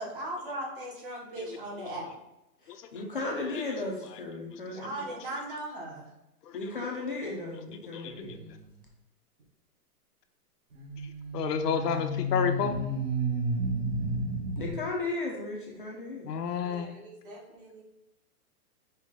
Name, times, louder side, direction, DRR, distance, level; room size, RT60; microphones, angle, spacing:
voice 1, 0.0-2.1 4.7-6.1 11.8-12.0 16.6-17.8, right 1 dB, 35° right, -1 dB, 0.8 m, -38 dB
voice 2, 1.4-2.1 2.7-2.9 3.4-3.6 4.0-4.2 4.5-4.8 6.4-6.8 7.9-8.4 11.0-12.8 16.2-16.9, left 8 dB, 90° left, 6 dB, 0.7 m, -32 dB
voice 3, 2.6-5.1 6.5-8.4 14.6-16.3, left 2 dB, 35° left, -2 dB, 0.4 m, -35 dB
sound 1, 8.1-8.4 10.7-14.7, right 1 dB, 55° right, 1.1 m, -31 dB
5.4 x 2.2 x 3.6 m, 0.90 s
hypercardioid pair, 165°, 47 cm